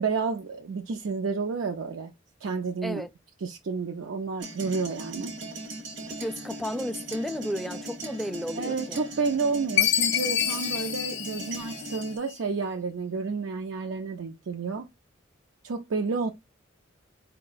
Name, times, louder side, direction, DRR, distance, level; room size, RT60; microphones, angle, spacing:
voice 1, 0.0-2.1 2.4-3.1 3.4-5.3 8.6-14.9 15.6-16.3, right 4 dB, 80° right, 0.5 m, -30 dB
sound 1, 4.4-12.2, right 1 dB, 60° right, 0.9 m, -39 dB
voice 2, 6.2-9.0, equal, ahead, 0.3 m, -33 dB
Chime, 9.8-12.3, left 10 dB, 60° left, 0.5 m, -27 dB
4.4 x 2.2 x 3.9 m
head